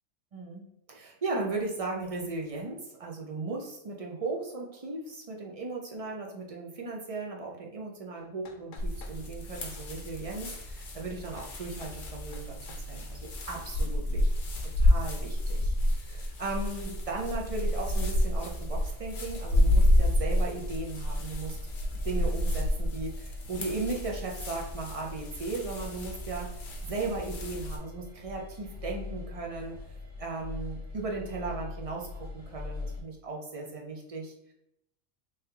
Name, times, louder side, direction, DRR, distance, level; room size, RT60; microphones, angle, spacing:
voice 1, 0.3-12.6 12.9-14.3 14.8-21.6 22.0-26.5 26.8-29.8 30.2-34.5, right 3 dB, 45° right, -1 dB, 0.4 m, -37 dB
sound 1, 8.2-9.2 11.4-11.6 11.8-12.0 12.3-12.9, left 5 dB, 85° left, 1.0 m, -52 dB
sound 2, 8.8-27.8, left 1 dB, 50° left, 0.7 m, -29 dB
sound 3, 19.1-33.0, left 3 dB, 70° right, 1.8 m, -43 dB
3.4 x 3.2 x 2.9 m, 0.80 s
omnidirectional pair, 1.3 m